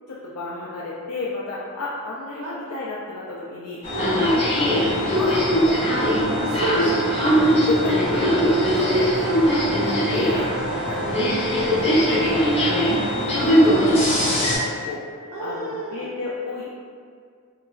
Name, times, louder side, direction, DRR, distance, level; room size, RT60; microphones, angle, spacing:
voice 1, 0.1-3.8 4.6-6.2 7.2-10.5 10.8-11.2 11.6-16.7, left 2 dB, 75° left, -7 dB, 0.4 m, -32 dB
sound 1, 3.8-14.6, equal, 25° left, 0.6 m, -20 dB
voice 2, 3.9-4.4 6.4-7.3 15.3-16.1, right 2 dB, 65° right, -4 dB, 0.6 m, -30 dB
2.9 x 2.4 x 2.3 m, 2.1 s
head